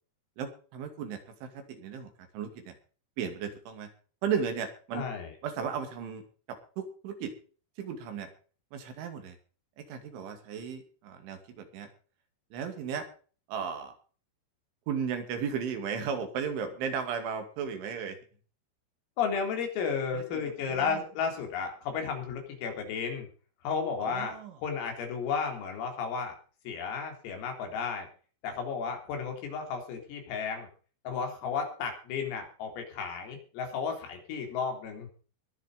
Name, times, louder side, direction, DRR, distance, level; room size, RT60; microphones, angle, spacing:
voice 1, 0.4-2.7 3.2-3.9 4.2-5.1 5.4-7.3 7.8-8.3 8.7-9.4 9.9-11.9 12.5-13.1 13.5-13.9 14.9-18.2 20.1-20.4 20.7-21.0 24.0-24.5, right 7 dB, 70° right, 6 dB, 4.7 m, -35 dB
voice 2, 4.9-5.4 19.2-23.3 23.6-26.4 26.7-28.1 28.4-30.7 31.0-35.1, left 6 dB, 85° left, 3 dB, 6.5 m, -33 dB
21.5 x 7.3 x 5.2 m, 0.40 s
omnidirectional pair, 5.8 m